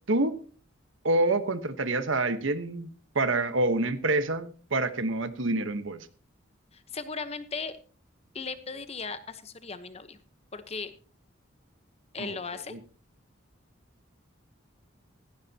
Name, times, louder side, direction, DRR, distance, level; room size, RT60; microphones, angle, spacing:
voice 1, 0.1-0.4 1.0-2.9 3.1-6.1 12.2-12.4 12.7-12.8, right 2 dB, 80° right, 11 dB, 1.3 m, -27 dB
voice 2, 6.7-7.8 8.3-10.2 10.5-10.9 12.1-12.8, left 4 dB, 30° left, 11 dB, 1.1 m, -37 dB
17.0 x 15.0 x 2.9 m, 0.39 s
head